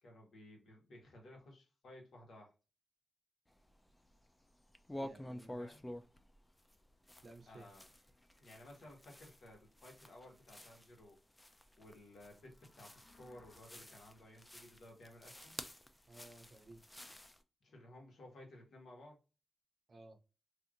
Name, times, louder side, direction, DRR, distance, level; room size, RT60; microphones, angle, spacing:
voice 1, 0.0-2.5 5.6-5.8 7.5-7.9 8.4-11.2 11.8-15.6 17.6-19.2, left 1 dB, 75° left, 0 dB, 1.5 m, -57 dB
sound 1, 3.5-4.3 4.6-17.4, left 1 dB, 10° left, 0.4 m, -51 dB
voice 2, 5.0-5.6 7.2-7.7 16.1-16.8 19.9-20.2, right 2 dB, 50° right, 6 dB, 0.6 m, -56 dB
sound 2, 12.2-13.6, left 2 dB, 55° left, 1.0 m, -66 dB
3.3 x 2.8 x 2.5 m, 0.31 s
wide cardioid pair, 110°, 0 cm